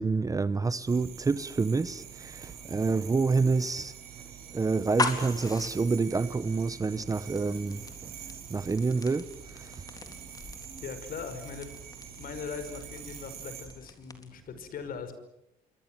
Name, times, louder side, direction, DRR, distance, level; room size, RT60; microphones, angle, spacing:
voice 1, 0.0-3.9 4.5-8.1 8.5-9.3 9.6-9.7 10.7-10.8, right 4 dB, 20° right, 0.9 m, -28 dB
sound 1, 0.8-13.7, right 8 dB, 70° right, 7.9 m, -46 dB
sound 2, 4.8-14.5, left 3 dB, 20° left, 3.7 m, -40 dB
voice 2, 10.8-11.7 12.2-15.2, left 6 dB, 60° left, 5.5 m, -40 dB
28.0 x 23.5 x 7.8 m
cardioid pair, 110°, 17 cm